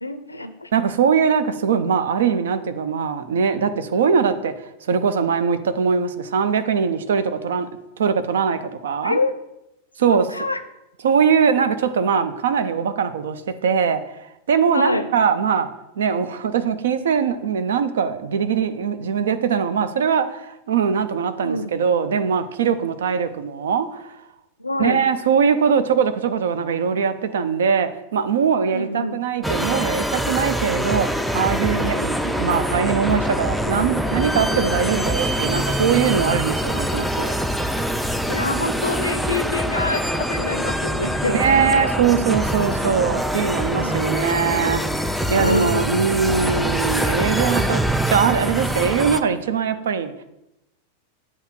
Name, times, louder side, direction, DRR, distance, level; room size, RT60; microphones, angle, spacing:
voice 1, 0.0-0.7 9.0-9.3 10.0-10.6 14.7-15.1 21.4-21.8 24.6-25.0 28.7-29.2 31.9-32.0 38.3-41.4 43.8-44.8 45.3-46.7, left 2 dB, 80° left, 10 dB, 0.5 m, -26 dB
voice 2, 0.7-7.7 8.0-9.2 10.0-10.2 11.0-14.2 14.5-15.7 16.0-24.2 24.8-31.1 31.3-37.3 41.3-44.8 45.3-50.1, right 6 dB, 60° right, 11 dB, 0.5 m, -21 dB
sound 1, 29.4-49.2, equal, ahead, 0.4 m, -24 dB
7.9 x 3.0 x 6.0 m, 0.91 s
figure-of-eight pair, 90°, 0 cm